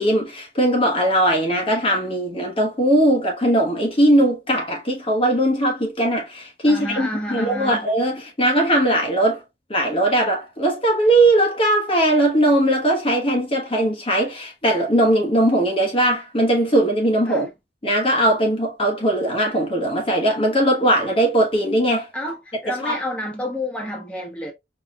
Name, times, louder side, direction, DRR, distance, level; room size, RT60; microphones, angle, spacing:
voice 1, 0.0-9.4 9.7-17.5 17.8-22.1 22.8-23.0, right 1 dB, 30° left, 1.1 m, -19 dB
voice 2, 6.7-7.9 17.3-17.5 22.1-24.5, left 1 dB, 5° left, 1.2 m, -29 dB
4.9 x 2.9 x 2.3 m
head